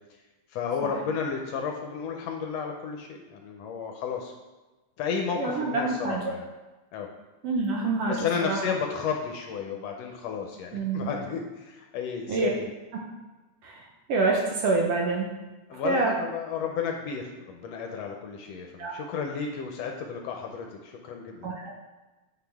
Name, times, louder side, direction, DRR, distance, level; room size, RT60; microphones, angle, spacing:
voice 1, 0.5-4.3 5.0-6.4 6.9-7.1 8.1-12.7 15.7-21.5, left 6 dB, 75° left, 2 dB, 1.6 m, -32 dB
voice 2, 5.4-6.2 7.4-8.6 10.7-11.1 12.3-12.5 13.6-13.8 14.1-15.3 15.8-16.1 18.8-18.9 21.4-21.7, right 3 dB, 70° right, 0 dB, 1.7 m, -26 dB
8.0 x 5.4 x 3.5 m, 1.2 s
omnidirectional pair, 3.3 m